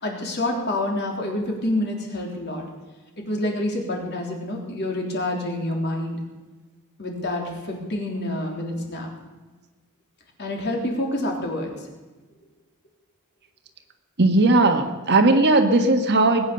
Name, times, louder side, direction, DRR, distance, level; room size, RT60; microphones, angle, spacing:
voice 1, 0.0-2.6 3.2-6.2 7.0-9.1 10.4-11.7, left 1 dB, 50° left, 1 dB, 3.4 m, -27 dB
voice 2, 14.2-16.5, right 2 dB, 50° right, 6 dB, 1.4 m, -18 dB
20.0 x 9.4 x 6.9 m, 1.3 s
head